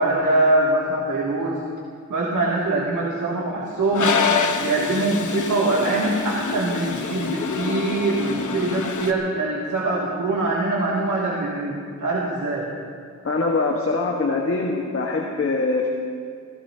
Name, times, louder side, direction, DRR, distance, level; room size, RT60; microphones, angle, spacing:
voice 1, 0.0-1.6 2.1-4.2 4.6-12.7, right 2 dB, 85° right, -4 dB, 2.4 m, -23 dB
Toilet flush, 3.9-9.1, left 5 dB, 80° left, 1.2 m, -26 dB
voice 2, 13.2-15.9, left 3 dB, 50° left, 0 dB, 1.4 m, -23 dB
29.5 x 16.5 x 2.8 m, 2.2 s
wide cardioid pair, 150°, 30 cm